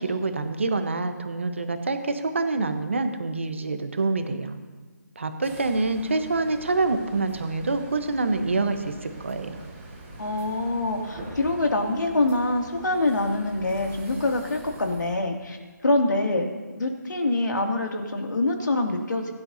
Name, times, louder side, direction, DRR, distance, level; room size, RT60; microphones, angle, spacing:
voice 1, 0.0-4.6 5.2-9.6, right 3 dB, 40° right, 8 dB, 1.1 m, -26 dB
sound 1, 5.4-15.2, right 1 dB, 5° right, 0.9 m, -43 dB
voice 2, 10.2-15.6 15.8-19.3, left 2 dB, 70° left, 2 dB, 2.5 m, -25 dB
21.0 x 11.0 x 2.8 m, 1.4 s
figure-of-eight pair, 180°, 10 cm